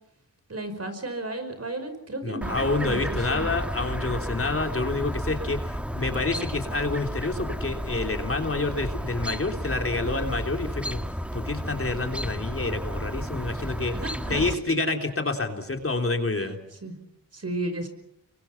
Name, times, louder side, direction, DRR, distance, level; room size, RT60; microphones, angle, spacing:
voice 1, 0.5-3.7 14.0-14.9 16.4-16.5 16.8-17.0 17.3-17.9, right 2 dB, 45° right, 8 dB, 5.4 m, -34 dB
voice 2, 2.2-11.0 11.3-13.9 14.3-16.6, left 3 dB, 40° left, 4 dB, 3.4 m, -28 dB
Chirp tweet, 2.4-14.5, equal, 5° right, 1.6 m, -32 dB
30.0 x 23.5 x 5.9 m, 0.79 s
cardioid pair, 60°, 34 cm